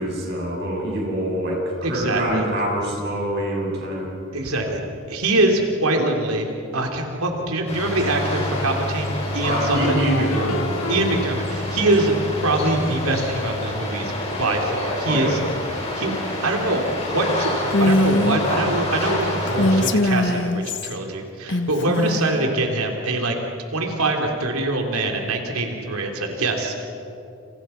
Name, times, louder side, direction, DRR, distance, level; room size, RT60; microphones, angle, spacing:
voice 1, 0.0-4.2 9.4-11.0 15.1-15.4, right 1 dB, 50° right, -1 dB, 7.7 m, -25 dB
voice 2, 1.8-2.5 4.3-4.8 5.1-10.0 10.9-12.1 12.4-14.1 14.4-15.4 15.9-23.4 23.7-26.9, right 2 dB, 85° right, 2 dB, 3.6 m, -24 dB
sound 1, 7.7-19.9, left 1 dB, 30° left, 6.4 m, -27 dB
sound 2, 9.7-11.7, left 3 dB, 80° left, 1.6 m, -30 dB
Female speech woman speaking, 17.7-18.4 19.5-21.0 21.5-22.4, left 1 dB, 55° left, 1.5 m, -21 dB
30.0 x 29.5 x 5.9 m, 2.7 s
head